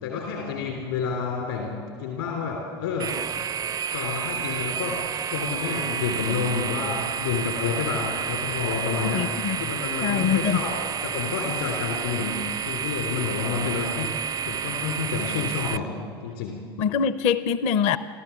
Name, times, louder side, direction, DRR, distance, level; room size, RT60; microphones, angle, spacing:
voice 1, 0.0-3.1 3.9-10.8 11.0-14.1 14.4-15.9 16.2-16.6, left 6 dB, 75° left, 3.3 m, -29 dB
sound 1, 3.0-15.8, right 7 dB, 30° right, 0.4 m, -30 dB
voice 2, 9.1-9.6 10.0-10.6 16.8-18.0, left 7 dB, 55° left, 0.8 m, -23 dB
29.5 x 13.0 x 7.1 m
figure-of-eight pair, 70°, 13 cm